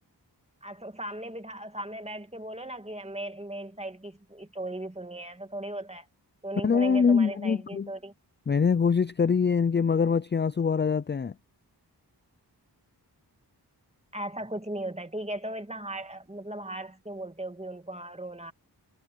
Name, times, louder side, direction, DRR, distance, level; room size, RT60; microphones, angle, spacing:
voice 1, 0.6-6.1 6.4-8.1 14.1-18.5, right 1 dB, 15° right, 2.1 m, -37 dB
voice 2, 6.6-7.9 8.5-11.3, left 6 dB, 30° left, 0.4 m, -24 dB
wide cardioid pair, 50°, 41 cm